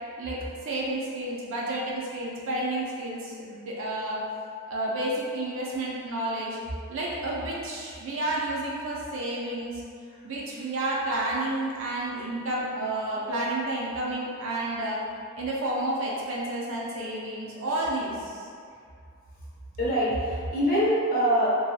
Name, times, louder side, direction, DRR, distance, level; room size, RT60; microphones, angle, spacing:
voice 1, 0.2-4.2 4.7-6.6 6.9-9.8 10.2-15.0 15.4-18.5, right 1 dB, 65° right, -5 dB, 0.4 m, -30 dB
voice 2, 19.8-21.5, equal, 45° left, -7 dB, 0.7 m, -25 dB
2.6 x 2.3 x 2.3 m, 2.2 s
head